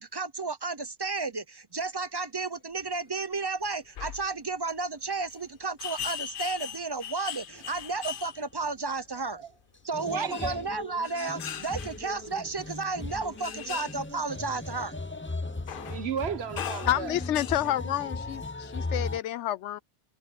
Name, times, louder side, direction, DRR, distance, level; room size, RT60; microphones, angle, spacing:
voice 1, 0.0-9.4 9.8-14.9, right 3 dB, 25° right, 0.6 m, -33 dB
sound 1, 3.6-3.7 3.9-4.3 5.3-5.4 5.8-8.7 10.3-12.3 13.0-14.0 14.7-14.8 15.7-16.2 16.6-18.0 18.6-18.7, left 9 dB, 55° left, 0.8 m, -39 dB
sound 2, 6.0-6.1 7.6-7.8 8.1-8.2 9.9-19.2, left 2 dB, 10° left, 0.7 m, -38 dB
voice 2, 10.0-10.7 15.8-17.2 17.6-17.7, right 7 dB, 65° right, 1.4 m, -35 dB
sound 3, 11.5-16.6, right 1 dB, 85° right, 5.8 m, -56 dB
voice 3, 16.9-19.8, left 12 dB, 85° left, 0.9 m, -29 dB
omnidirectional pair, 1.2 m